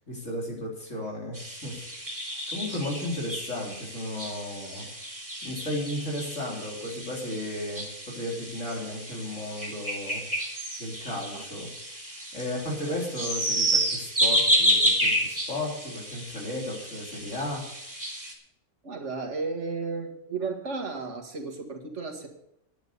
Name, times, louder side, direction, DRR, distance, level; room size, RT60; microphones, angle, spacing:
voice 1, 0.1-1.7 2.5-4.9 5.4-10.2 10.8-11.7 12.3-17.6, left 1 dB, 90° left, -2 dB, 3.9 m, -34 dB
sound 1, 1.3-18.3, equal, 15° right, 2.6 m, -30 dB
voice 2, 18.8-22.3, right 4 dB, 70° right, 2 dB, 2.2 m, -34 dB
10.5 x 9.4 x 6.8 m, 0.77 s
omnidirectional pair, 1.3 m